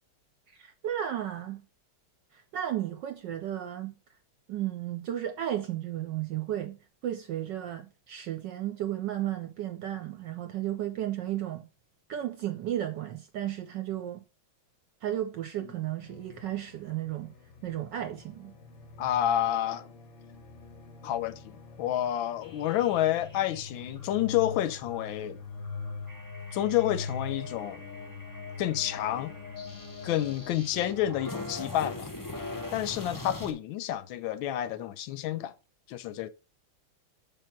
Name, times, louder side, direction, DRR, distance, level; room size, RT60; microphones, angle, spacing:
voice 1, 0.5-1.6 2.3-3.9 4.5-6.8 7.0-11.7 12.1-14.2 15.0-17.3 17.6-18.5, right 12 dB, 70° right, 1.2 m, -34 dB
sound 1, 16.0-30.5, left 4 dB, 55° left, 0.8 m, -43 dB
voice 2, 19.0-19.9 21.0-25.4 26.5-27.8 28.6-29.3 30.0-32.1 32.7-35.5 35.9-36.3, left 12 dB, 80° left, 1.3 m, -29 dB
sound 2, 22.4-33.5, left 2 dB, 30° left, 0.3 m, -43 dB
5.9 x 3.6 x 5.8 m
omnidirectional pair, 2.3 m